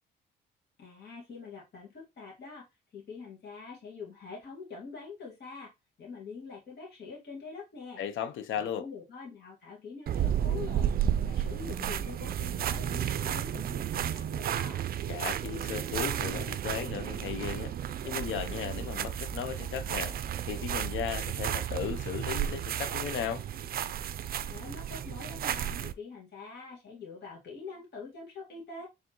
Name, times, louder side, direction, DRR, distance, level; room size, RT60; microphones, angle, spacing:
voice 1, 0.8-2.7 2.9-5.7 6.0-8.0 8.5-14.8 24.5-28.9, left 4 dB, 55° left, 2.0 m, -45 dB
voice 2, 8.0-8.9 15.1-17.7 18.0-20.2 20.5-23.4, left 9 dB, 75° left, 0.6 m, -36 dB
sound 1, 10.1-25.9, right 10 dB, 50° right, 0.4 m, -32 dB
4.5 x 3.5 x 3.0 m
cardioid pair, 90°, 20 cm